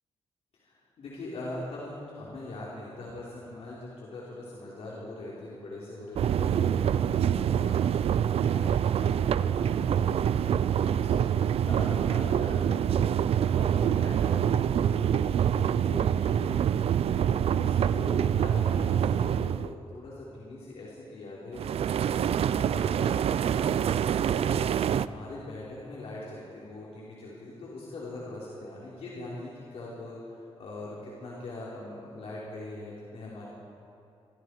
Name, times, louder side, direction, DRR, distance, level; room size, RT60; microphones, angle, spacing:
voice 1, 0.5-23.1 23.5-33.5, left 2 dB, 70° left, -7 dB, 5.1 m, -42 dB
sound 1, 6.2-19.7 21.6-25.1, right 9 dB, 70° right, 0.6 m, -26 dB
27.0 x 25.5 x 5.1 m, 2.7 s
wide cardioid pair, 135°, 10 cm